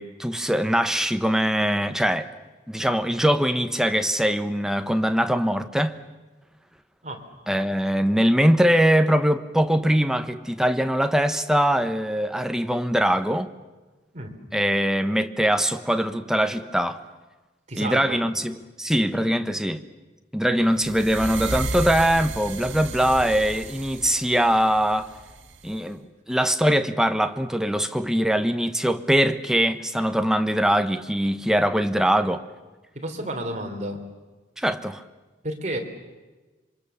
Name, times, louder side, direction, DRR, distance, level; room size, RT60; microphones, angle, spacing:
voice 1, 0.0-2.3 2.7-6.0 7.5-13.5 14.5-17.0 17.8-19.8 20.3-25.1 25.6-32.4 34.6-35.0, equal, 5° right, 0.9 m, -22 dB
voice 2, 17.7-18.2 32.9-34.0 35.4-35.8, right 1 dB, 40° right, 3.2 m, -31 dB
sound 1, 20.8-25.8, right 2 dB, 90° right, 1.6 m, -34 dB
27.0 x 24.0 x 7.0 m
head